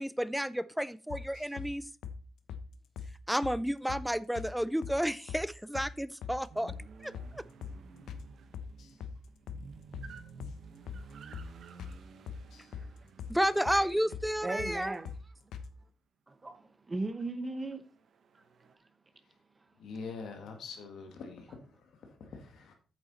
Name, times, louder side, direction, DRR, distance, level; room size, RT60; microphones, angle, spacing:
voice 1, 0.0-1.9 3.3-6.7 7.0-7.4 13.3-14.9, equal, ahead, 0.4 m, -31 dB
sound 1, 1.1-1.7 2.0-2.2 2.5-2.6 3.0-3.1 3.4-3.6 3.9-4.0 4.3-4.5 4.8-5.4 5.7-5.9 6.2-6.4 6.7-6.8 7.1-7.3 7.6-7.8 8.1-8.2 8.5-9.2 9.5-9.6 9.9-10.1 10.4-10.6 10.9-11.0 11.3-11.5 11.8-12.0 12.3-12.9 13.2-13.3 13.6-13.8 14.1-14.3 14.6-14.7 15.0-15.2 15.5-15.7, left 6 dB, 85° left, 1.0 m, -41 dB
sound 2, 6.5-15.4 17.8-18.7, right 6 dB, 55° right, 1.1 m, -53 dB
voice 2, 14.4-15.1 16.3-17.9 18.3-18.9, right 2 dB, 20° right, 0.9 m, -38 dB
voice 3, 19.8-22.7, left 4 dB, 65° left, 1.9 m, -44 dB
8.8 x 6.9 x 4.2 m
wide cardioid pair, 170°, 0 cm